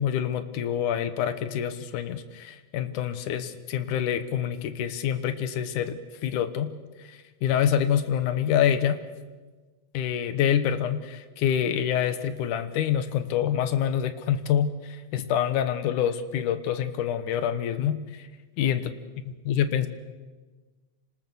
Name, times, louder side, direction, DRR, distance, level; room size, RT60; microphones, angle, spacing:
voice 1, 0.0-6.7 7.0-9.0 9.9-18.3 18.6-18.8 19.5-19.9, left 9 dB, 85° left, 11 dB, 2.6 m, -26 dB
26.5 x 20.0 x 7.0 m, 1.3 s
omnidirectional pair, 3.5 m